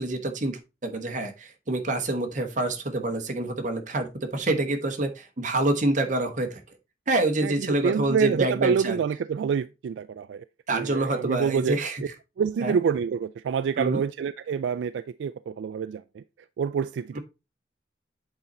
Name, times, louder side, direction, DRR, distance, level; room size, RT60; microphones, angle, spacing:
voice 1, 0.0-6.6 7.1-9.0 10.7-12.0 12.6-12.7 13.8-14.0, right 2 dB, 40° right, 1.2 m, -27 dB
voice 2, 7.4-11.8 12.4-16.2 16.6-17.2, right 6 dB, 75° right, 0.3 m, -27 dB
8.1 x 4.3 x 3.9 m
head